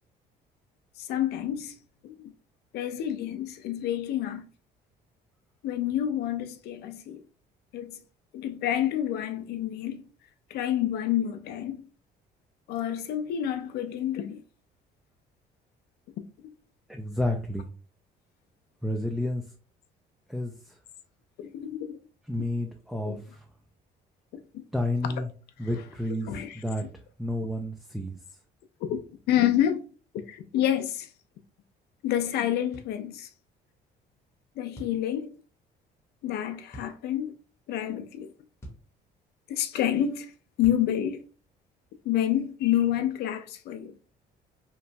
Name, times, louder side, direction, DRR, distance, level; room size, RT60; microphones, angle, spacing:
voice 1, 1.1-1.7 2.0-2.1 2.7-4.4 5.6-7.2 7.7-8.0 8.3-10.0 10.5-11.8 12.7-14.4 21.4-22.0 23.0-23.2 26.3-26.6 28.9-29.0 29.3-29.8 30.3-31.1 32.0-33.3 34.6-35.3 36.2-37.3 37.7-38.3 39.5-40.3 40.6-41.2 42.1-43.9, left 11 dB, 75° left, 0.5 m, -28 dB
voice 2, 16.9-17.7 18.8-19.4 20.3-20.7 22.3-23.4 24.7-25.3 25.6-26.8 27.2-28.2, left 1 dB, ahead, 0.3 m, -30 dB
sound 1, 32.7-33.0 34.8-35.0 36.7-36.9 38.6-38.9 40.6-40.9, equal, 15° left, 0.8 m, -44 dB
3.0 x 2.2 x 2.5 m
cardioid pair, 110°, 17 cm